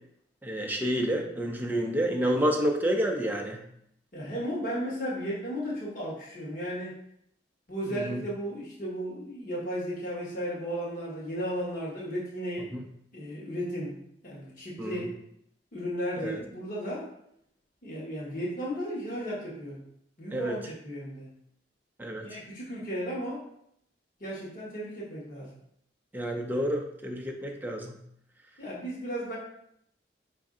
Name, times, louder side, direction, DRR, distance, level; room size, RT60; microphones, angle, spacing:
voice 1, 0.4-3.6 7.9-8.2 12.7-12.8 14.8-15.0 16.2-16.3 20.3-20.6 22.0-22.3 26.1-28.0, equal, 10° right, 1 dB, 0.4 m, -29 dB
voice 2, 4.1-6.9 7.7-12.7 13.1-14.0 14.2-15.1 15.7-17.1 17.8-19.8 20.2-21.3 22.2-23.4 24.2-25.5 28.6-29.4, equal, 50° left, -6 dB, 1.2 m, -34 dB
5.1 x 2.6 x 3.6 m, 0.72 s
head